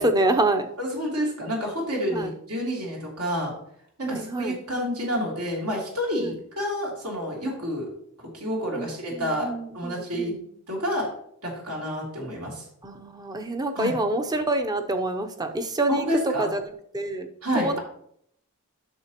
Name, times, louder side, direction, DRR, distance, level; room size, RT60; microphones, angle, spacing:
voice 1, 0.0-0.7 2.1-2.3 4.0-4.6 6.2-6.3 8.7-8.9 9.2-10.4 12.8-16.6 16.9-17.3 17.5-17.8, right 2 dB, 20° right, 6 dB, 0.6 m, -26 dB
voice 2, 0.8-3.5 4.0-7.9 8.3-9.5 9.7-10.4 10.7-11.1 11.4-12.6 13.7-14.0 15.9-16.5 17.4-17.8, equal, 80° right, -3 dB, 3.0 m, -29 dB
10.0 x 6.5 x 2.9 m, 0.69 s
head